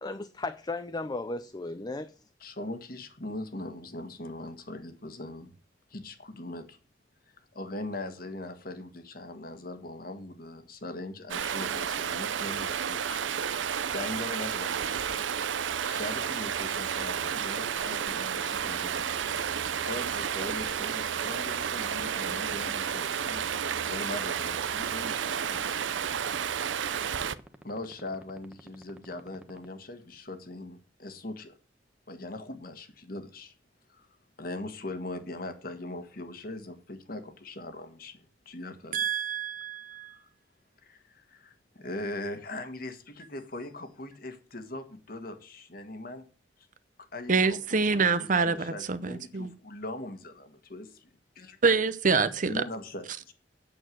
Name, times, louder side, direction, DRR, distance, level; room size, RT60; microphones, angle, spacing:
voice 1, 0.0-2.1, left 2 dB, 20° left, 0.5 m, -35 dB
voice 2, 2.4-5.5 5.9-6.8 7.5-13.2 13.9-15.3 15.8-23.4 23.8-25.9 27.6-31.6 32.1-33.5 33.9-34.1 34.4-39.0 40.0-40.3 40.8-46.3 46.6-46.7 47.1-51.1 51.3-51.6 52.4-53.3, left 1 dB, 50° left, 1.6 m, -40 dB
Stream, 11.3-27.3, right 8 dB, 85° right, 0.6 m, -31 dB
sound 1, 17.3-29.6, equal, 5° right, 1.0 m, -48 dB
voice 3, 38.9-40.2 47.3-49.5 51.6-52.6, right 5 dB, 45° right, 0.7 m, -26 dB
8.8 x 6.7 x 7.7 m
head